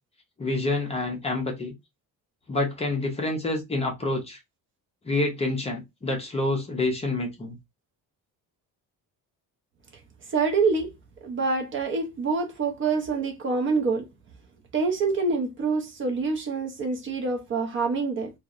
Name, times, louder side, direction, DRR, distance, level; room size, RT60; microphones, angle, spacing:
voice 1, 0.4-1.7 2.5-4.4 5.0-7.6, left 2 dB, 20° left, 0.5 m, -27 dB
voice 2, 10.3-10.9 11.2-14.1 14.7-18.3, right 4 dB, 35° right, 0.4 m, -26 dB
2.6 x 2.0 x 2.4 m
cardioid pair, 165°, 35 cm